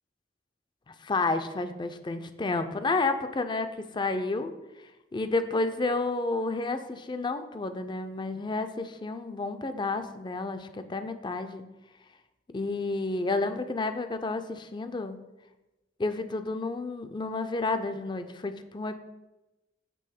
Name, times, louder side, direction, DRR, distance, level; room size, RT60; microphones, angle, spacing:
voice 1, 0.9-4.5 5.1-11.6 12.5-15.2 16.0-19.0, left 3 dB, 25° left, 9 dB, 0.4 m, -30 dB
7.6 x 3.5 x 6.5 m, 1.0 s
head